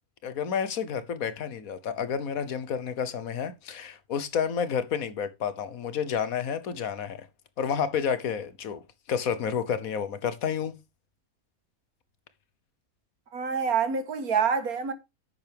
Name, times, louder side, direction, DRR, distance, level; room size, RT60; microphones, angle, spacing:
voice 1, 0.2-7.3 7.6-8.8 9.1-10.7, left 7 dB, 75° left, 1.5 m, -30 dB
voice 2, 13.3-14.9, right 6 dB, 90° right, 2.0 m, -26 dB
10.5 x 8.0 x 3.5 m
omnidirectional pair, 1.5 m